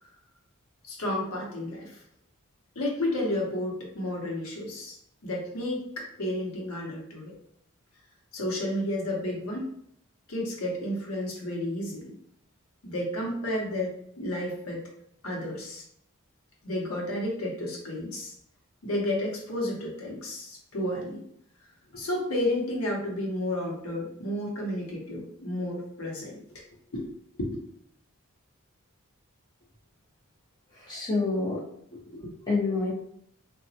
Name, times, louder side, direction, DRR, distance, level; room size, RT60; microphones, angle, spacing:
voice 1, 0.8-2.0 2.7-4.9 5.2-7.3 8.3-9.7 10.3-12.1 12.8-14.8 15.2-15.8 16.6-18.3 18.8-21.2 21.9-26.4 26.9-27.1 27.4-27.6, left 1 dB, 85° left, -1 dB, 0.9 m, -31 dB
voice 2, 30.7-31.6 31.9-32.9, left 3 dB, 20° left, -5 dB, 0.9 m, -29 dB
2.9 x 2.2 x 2.7 m, 0.69 s
head